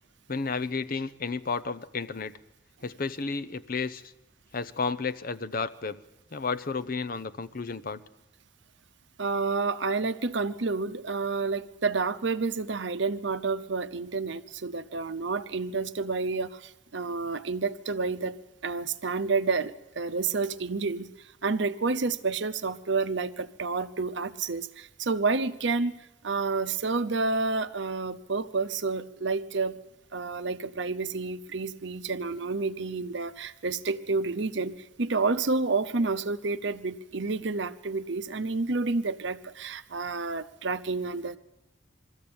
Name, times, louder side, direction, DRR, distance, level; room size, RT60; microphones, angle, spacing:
voice 1, 0.3-2.3 2.8-4.1 4.5-6.0 6.3-8.0, left 4 dB, 45° left, 15 dB, 0.7 m, -32 dB
voice 2, 9.2-18.4 18.6-21.1 21.4-25.9 26.2-29.8 30.1-41.4, right 4 dB, 65° right, 12 dB, 0.8 m, -29 dB
22.0 x 14.0 x 8.7 m, 1.0 s
head